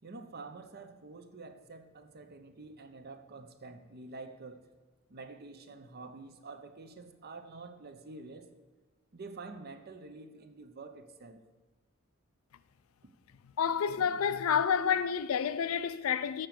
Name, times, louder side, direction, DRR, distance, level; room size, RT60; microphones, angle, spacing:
voice 1, 0.0-4.7 5.1-8.5 9.1-11.4, right 3 dB, 50° right, 0.7 m, -48 dB
voice 2, 13.6-16.5, left 7 dB, 90° left, 0.4 m, -29 dB
7.5 x 5.1 x 5.9 m
head